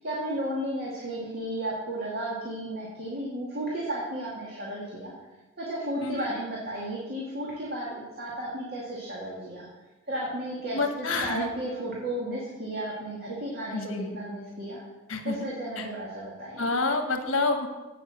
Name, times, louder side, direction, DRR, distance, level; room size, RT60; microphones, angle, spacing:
voice 1, 0.0-5.1 5.6-9.7 10.1-14.8 15.2-16.7, right 1 dB, 50° right, -5 dB, 2.1 m, -34 dB
voice 2, 6.0-6.3 10.7-11.5 13.7-14.1 15.1-15.4 15.8-15.9 16.6-17.7, left 3 dB, 80° left, 6 dB, 1.3 m, -28 dB
8.6 x 7.3 x 6.2 m, 1.2 s
head